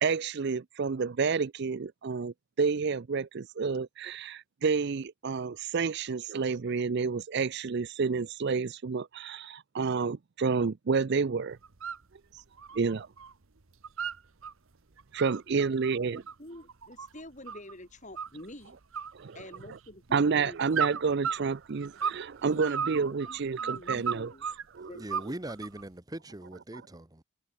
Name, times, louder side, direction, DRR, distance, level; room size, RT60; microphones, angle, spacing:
voice 1, 0.0-11.6 12.7-13.1 15.1-16.2 19.1-19.4 19.7-19.8 20.1-24.3 24.7-24.9 26.7-26.9, right 5 dB, 50° right, 0.5 m, -29 dB
sound 1, 11.6-12.0 12.4-13.3 13.6-14.5 15.0-17.7 18.2-18.6 18.9-19.9 20.7-22.3 22.6-24.6 25.1-25.8, right 6 dB, 65° right, 1.1 m, -34 dB
voice 2, 15.5-18.8 19.3-20.9 22.4-24.5 24.8-25.2, left 1 dB, 35° left, 6.5 m, -48 dB
voice 3, 25.0-27.2, right 1 dB, 15° right, 1.0 m, -41 dB
head